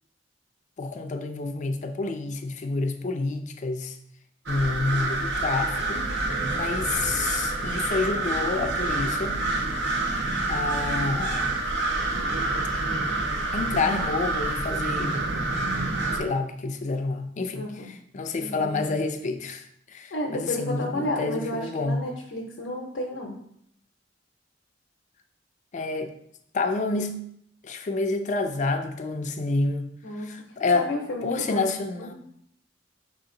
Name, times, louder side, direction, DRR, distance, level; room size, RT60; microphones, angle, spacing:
voice 1, 0.8-4.0 4.5-6.1 6.5-9.4 10.5-11.6 13.5-15.1 16.1-17.7 18.1-22.0 25.7-26.1 26.5-27.2 27.6-29.9 30.2-30.9 31.2-32.1, left 3 dB, 40° left, 6 dB, 0.4 m, -28 dB
sound 1, 4.5-16.2, right 2 dB, 70° right, 0.7 m, -27 dB
voice 2, 17.5-17.9 18.4-19.0 20.1-23.4 30.0-30.3 30.7-31.6 32.0-32.1, left 1 dB, 75° left, -1 dB, 0.7 m, -32 dB
5.1 x 2.8 x 3.7 m, 0.70 s
head